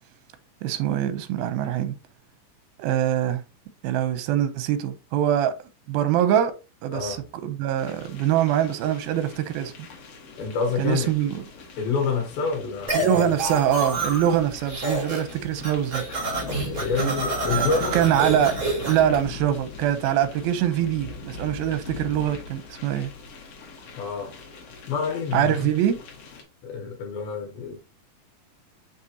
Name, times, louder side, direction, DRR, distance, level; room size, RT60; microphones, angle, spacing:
voice 1, 0.6-1.9 2.8-3.4 3.8-5.5 5.9-6.5 6.8-7.2 7.4-9.9 10.8-11.5 12.9-16.1 17.0-17.1 17.6-17.7 17.9-18.6 18.8-23.1 25.3-26.0, right 10 dB, 85° right, 2.6 m, -23 dB
voice 2, 6.9-7.2 10.4-11.1 11.8-13.4 16.6-18.0 24.0-24.4 24.9-25.6 26.6-27.8, left 5 dB, 80° left, 2.9 m, -28 dB
sound 1, 7.8-26.4, left 4 dB, 55° left, 2.1 m, -40 dB
sound 2, 12.9-14.4 14.7-15.3 15.6-19.1, right 2 dB, 35° right, 3.8 m, -28 dB
6.6 x 5.2 x 2.8 m
omnidirectional pair, 4.2 m